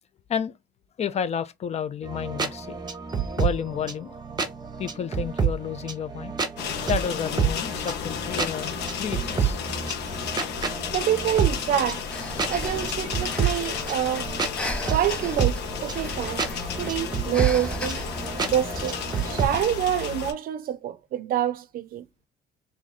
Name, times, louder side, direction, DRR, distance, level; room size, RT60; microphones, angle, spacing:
voice 1, 1.0-2.8 3.4-4.1 4.8-6.3 6.8-9.6, left 7 dB, 40° left, 0.5 m, -31 dB
sound 1, 2.0-19.5, right 6 dB, 25° right, 0.8 m, -30 dB
sound 2, 6.6-20.3, left 8 dB, 80° left, 0.9 m, -33 dB
voice 2, 10.9-12.0 12.4-14.3 14.9-16.4 16.7-18.1 18.5-19.0 19.2-22.0, right 11 dB, 60° right, 0.5 m, -26 dB
Breathing, 12.1-19.6, equal, 5° left, 0.8 m, -37 dB
3.0 x 2.7 x 3.9 m
cardioid pair, 110°, 17 cm